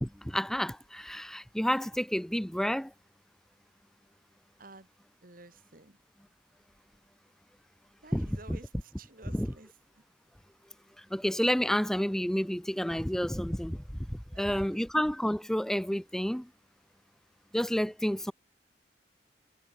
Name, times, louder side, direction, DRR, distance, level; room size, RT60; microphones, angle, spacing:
voice 1, 0.0-2.9 8.1-8.3 9.3-9.5 11.0-16.5 17.5-18.3, equal, 5° left, 0.5 m, -30 dB
voice 2, 4.6-4.9 5.2-6.0 8.0-10.0 14.3-14.9, right 2 dB, 50° right, 3.2 m, -52 dB
head